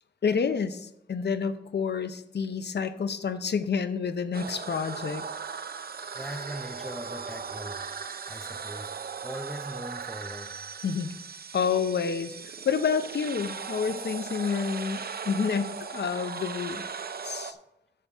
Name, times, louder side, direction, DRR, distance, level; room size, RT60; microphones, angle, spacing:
voice 1, 0.2-5.3 10.8-11.2 11.5-16.8 17.2-17.6, left 6 dB, 70° left, 0.7 m, -29 dB
sound 1, 4.3-17.5, right 6 dB, 60° right, 0.6 m, -38 dB
voice 2, 6.1-7.9 8.3-8.9 9.2-10.6, equal, ahead, 0.8 m, -40 dB
11.0 x 7.1 x 3.5 m
wide cardioid pair, 95°, 18 cm